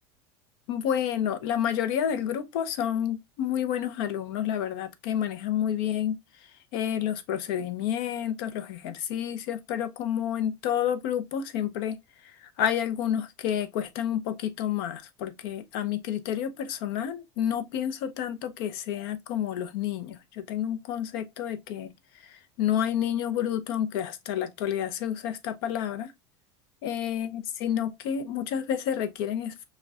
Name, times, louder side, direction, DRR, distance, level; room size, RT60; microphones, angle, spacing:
voice 1, 0.7-6.2 6.7-12.0 12.4-21.9 22.2-26.1 26.8-29.6, left 9 dB, 65° left, 0.6 m, -29 dB
6.0 x 2.2 x 2.3 m
supercardioid pair, 150°, 13 cm